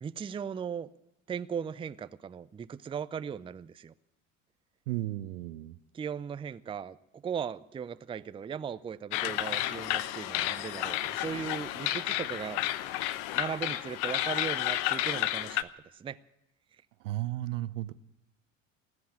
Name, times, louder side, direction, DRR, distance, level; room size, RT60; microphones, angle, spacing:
voice 1, 0.0-0.9 1.3-3.9 5.9-12.6 13.3-16.2, right 7 dB, 15° right, 15 dB, 0.5 m, -38 dB
voice 2, 4.9-5.8 17.0-17.9, right 16 dB, 70° right, 16 dB, 0.8 m, -34 dB
sound 1, 9.1-15.6, left 14 dB, 60° left, 0.9 m, -31 dB
Bass guitar, 11.2-15.3, left 5 dB, 85° left, 1.8 m, -57 dB
20.0 x 7.9 x 8.7 m, 0.88 s
figure-of-eight pair, 65°, 39 cm